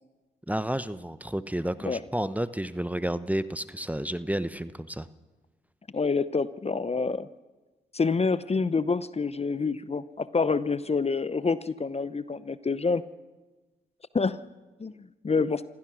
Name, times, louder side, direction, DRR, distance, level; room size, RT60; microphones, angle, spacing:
voice 1, 0.5-5.1, right 1 dB, 5° right, 14 dB, 0.9 m, -31 dB
voice 2, 5.9-7.3 7.9-13.0 14.1-14.4 14.8-15.6, left 4 dB, 30° left, 16 dB, 0.8 m, -27 dB
26.0 x 16.0 x 6.3 m, 1.2 s
hypercardioid pair, 45°, 21 cm